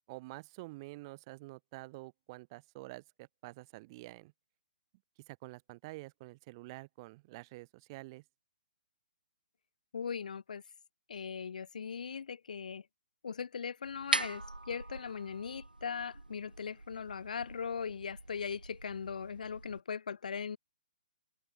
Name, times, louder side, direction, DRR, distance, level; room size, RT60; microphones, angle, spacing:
voice 1, 0.1-4.3 5.3-8.2, right 22 dB, 30° right, 3.4 m, -48 dB
voice 2, 9.9-10.6 11.1-12.8 13.2-20.6, left 6 dB, 60° left, 2.1 m, -39 dB
sound 1, 13.8-19.8, right 2 dB, 85° right, 1.5 m, -41 dB
figure-of-eight pair, 125°, 5 cm